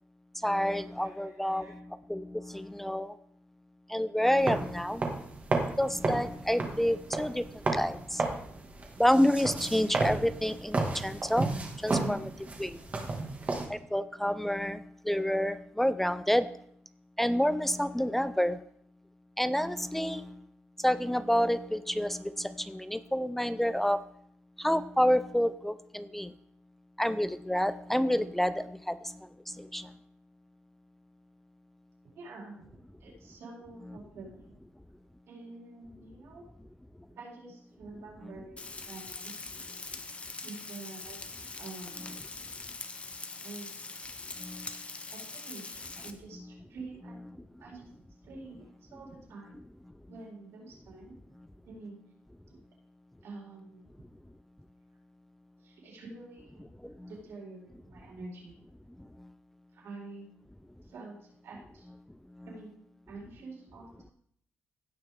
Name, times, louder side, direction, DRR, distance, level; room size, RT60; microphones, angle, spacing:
voice 1, 0.4-3.1 3.9-5.0 5.8-8.4 9.0-12.3 12.6-12.8 13.7-16.6 17.2-18.6 19.4-20.4 20.8-24.0 24.6-26.3 27.0-30.0 33.8-34.0 38.2-38.4 41.9-42.2 44.4-44.8 46.3-46.6 47.0-47.4 56.8-57.2 59.2-59.3 61.9-62.0 62.4-62.6, equal, 5° left, 14 dB, 0.3 m, -29 dB
voice 2, 1.0-1.7 32.0-34.6 35.3-36.4 37.1-38.6 38.8-39.3 40.4-42.5 43.4-43.9 45.1-48.0 48.2-49.6 50.1-51.2 51.6-52.0 53.2-53.8 55.6-56.7 57.0-58.5 59.7-60.3 60.8-61.2 61.4-61.9 62.4-62.7 63.1-64.1, right 3 dB, 85° right, -4 dB, 5.1 m, -47 dB
sound 1, 4.4-13.7, right 3 dB, 35° right, 1.9 m, -33 dB
Frying (food), 38.6-46.1, left 3 dB, 30° left, 0.8 m, -43 dB
16.5 x 6.1 x 3.6 m, 0.68 s
cardioid pair, 125°, 4 cm